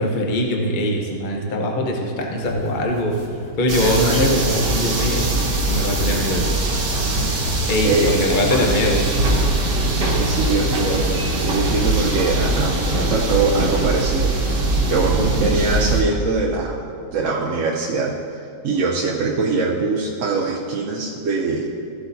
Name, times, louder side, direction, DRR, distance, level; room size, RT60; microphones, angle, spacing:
voice 1, 0.0-3.2 3.6-5.3 5.7-6.5 7.7-9.1 15.2-15.5, left 1 dB, 35° left, 0 dB, 0.9 m, -21 dB
sound 1, 2.4-9.1 9.4-9.5, left 1 dB, 60° left, 2.5 m, -32 dB
sound 2, 3.7-16.0, right 2 dB, 80° right, 1.8 m, -21 dB
voice 2, 7.8-8.2 10.0-16.9 17.1-18.2 18.6-21.7, right 3 dB, 60° right, -1 dB, 0.8 m, -23 dB
14.5 x 7.9 x 2.7 m, 2.4 s
omnidirectional pair, 1.9 m